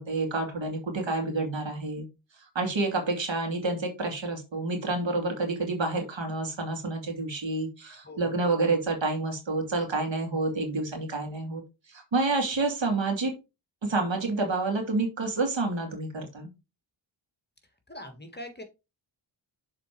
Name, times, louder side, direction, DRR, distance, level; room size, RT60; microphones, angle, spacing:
voice 1, 0.0-2.0 2.5-11.6 11.9-13.3 13.8-16.5, right 3 dB, 65° right, 3 dB, 2.7 m, -29 dB
voice 2, 8.0-8.3 17.9-18.6, left 1 dB, 20° left, 6 dB, 1.5 m, -42 dB
6.8 x 4.2 x 4.5 m, 0.27 s
cardioid pair, 75°, 49 cm